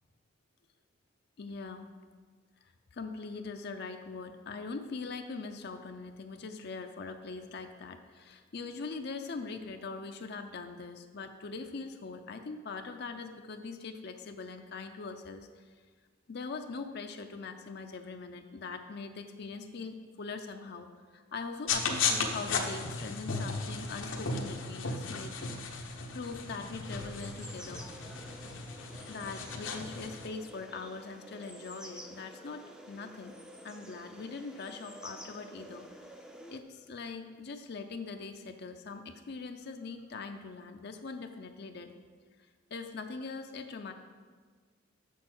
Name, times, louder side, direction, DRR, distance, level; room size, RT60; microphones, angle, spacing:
voice 1, 1.4-1.9 2.9-15.7 16.3-25.3 25.8-27.8 29.1-33.4 33.6-36.1 36.5-41.9 42.7-43.9, left 4 dB, 55° left, 6 dB, 0.5 m, -42 dB
sound 1, 21.7-30.3, left 4 dB, 85° left, 0.9 m, -35 dB
sound 2, 26.8-36.6, equal, 5° right, 0.5 m, -50 dB
6.9 x 6.5 x 5.9 m, 1.5 s
head